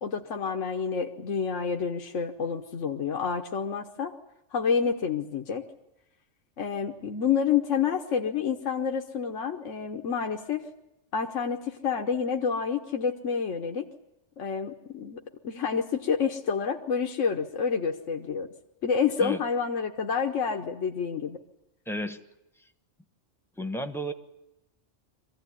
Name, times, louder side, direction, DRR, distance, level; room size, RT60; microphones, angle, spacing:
voice 1, 0.0-4.1 4.5-5.6 6.6-10.6 11.1-13.9 14.4-18.5 18.8-21.4, left 6 dB, 80° left, 4 dB, 1.5 m, -28 dB
voice 2, 21.9-22.2 23.6-24.1, equal, ahead, 9 dB, 1.1 m, -32 dB
24.0 x 16.0 x 9.9 m, 0.90 s
omnidirectional pair, 1.3 m